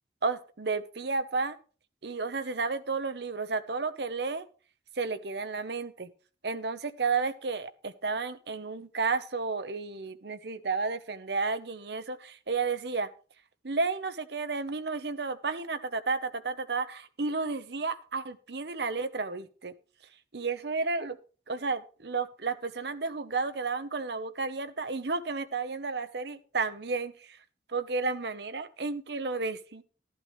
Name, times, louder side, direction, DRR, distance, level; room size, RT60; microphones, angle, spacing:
voice 1, 0.2-1.6 2.0-4.5 5.0-6.1 6.4-13.1 13.6-19.7 20.3-21.2 21.5-27.4 27.7-29.8, right 4 dB, 65° right, 11 dB, 0.9 m, -32 dB
12.0 x 11.5 x 3.2 m, 0.37 s
head